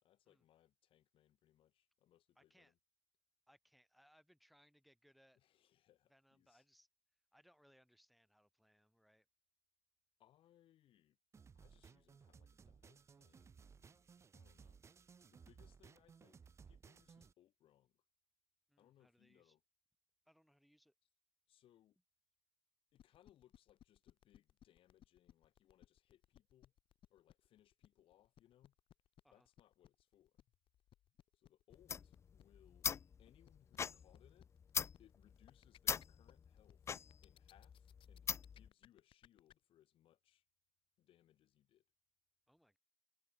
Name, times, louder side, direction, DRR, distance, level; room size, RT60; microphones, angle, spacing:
voice 1, 0.0-2.8 5.3-6.6 10.2-11.2 11.5-14.0 14.3-14.8 15.2-18.0 18.8-19.6 21.5-22.0 22.9-26.7 27.1-28.7 29.3-30.4 31.3-32.9 33.2-34.5 35.0-37.0 37.2-40.4 41.0-41.8, left 12 dB, 90° left, 1.5 m, -71 dB
voice 2, 2.4-2.7 3.5-5.4 6.1-6.9 7.3-9.3 18.7-19.6 20.3-20.9 29.2-29.5 42.5-42.8, equal, ahead, 5.4 m, -71 dB
sound 1, 11.3-17.3, right 6 dB, 30° right, 1.5 m, -61 dB
sound 2, 23.0-39.5, left 11 dB, 75° left, 1.2 m, -65 dB
sound 3, 31.7-38.7, left 7 dB, 30° left, 0.3 m, -43 dB
wide cardioid pair, 170°, 9 cm